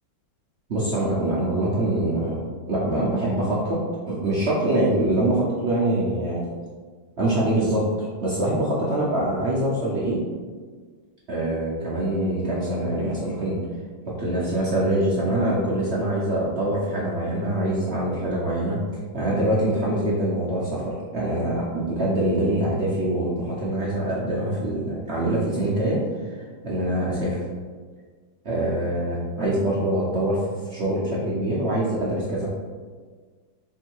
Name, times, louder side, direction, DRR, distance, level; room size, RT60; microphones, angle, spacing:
voice 1, 0.7-3.8 4.1-6.5 7.2-10.2 11.3-13.6 14.2-18.8 19.1-26.0 26.3-27.4 28.4-30.4 30.6-32.5, right 1 dB, 65° right, -7 dB, 0.6 m, -24 dB
3.6 x 2.7 x 4.4 m, 1.5 s
omnidirectional pair, 2.1 m